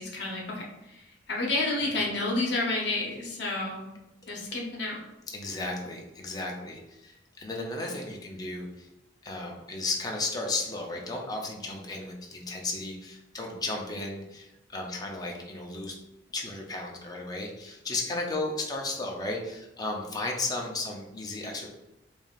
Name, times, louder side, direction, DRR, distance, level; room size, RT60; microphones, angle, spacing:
voice 1, 0.0-3.8 4.3-5.0, left 2 dB, 65° left, -2 dB, 0.8 m, -30 dB
voice 2, 5.3-8.9 9.2-15.9 16.3-21.7, left 2 dB, 20° left, 0 dB, 0.5 m, -34 dB
3.3 x 2.6 x 2.3 m, 0.93 s
head